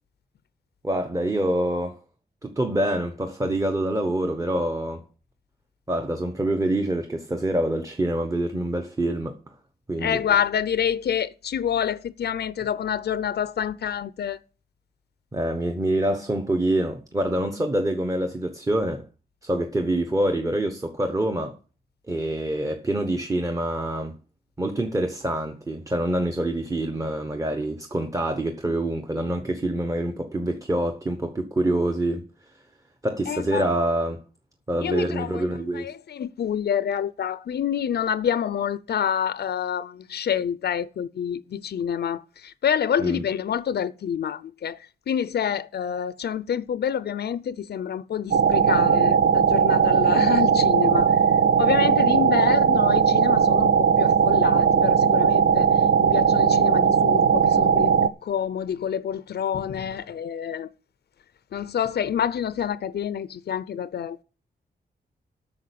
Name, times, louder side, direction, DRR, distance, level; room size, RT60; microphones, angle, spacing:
voice 1, 0.8-1.9 2.4-5.0 5.9-9.4 9.9-10.2 15.3-19.0 19.4-21.6 22.1-24.1 24.6-32.2 33.0-34.2 34.7-35.9 43.0-43.2, right 1 dB, 20° right, 1.0 m, -26 dB
voice 2, 10.0-14.4 33.3-33.7 34.8-51.1 51.6-55.7 56.0-60.7 61.5-64.2, left 8 dB, 75° left, 0.6 m, -27 dB
sound 1, 48.3-58.1, right 6 dB, 65° right, 0.7 m, -19 dB
8.6 x 6.4 x 8.4 m
wide cardioid pair, 135°, 17 cm